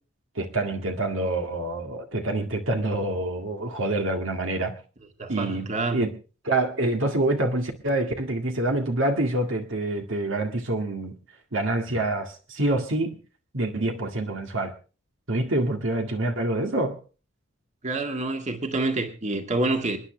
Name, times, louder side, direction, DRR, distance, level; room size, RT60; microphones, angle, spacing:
voice 1, 0.4-4.7 5.3-6.1 6.4-11.2 11.5-13.1 13.5-14.7 15.3-17.0, right 2 dB, 65° right, 1.9 m, -26 dB
voice 2, 5.2-6.0 17.8-20.0, right 2 dB, 35° right, 2.0 m, -27 dB
27.5 x 10.5 x 3.3 m
head